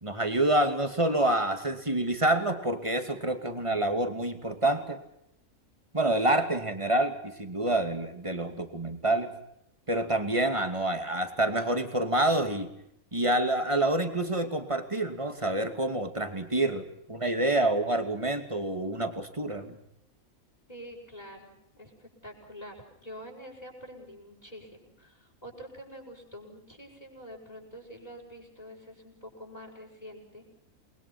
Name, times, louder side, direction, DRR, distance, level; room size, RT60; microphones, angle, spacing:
voice 1, 0.0-5.0 5.9-9.3 9.9-12.7 13.1-19.8, right 1 dB, 20° right, 7 dB, 2.6 m, -27 dB
voice 2, 20.7-30.5, equal, 25° left, 2 dB, 7.2 m, -46 dB
29.0 x 22.0 x 5.9 m, 0.76 s
omnidirectional pair, 1.6 m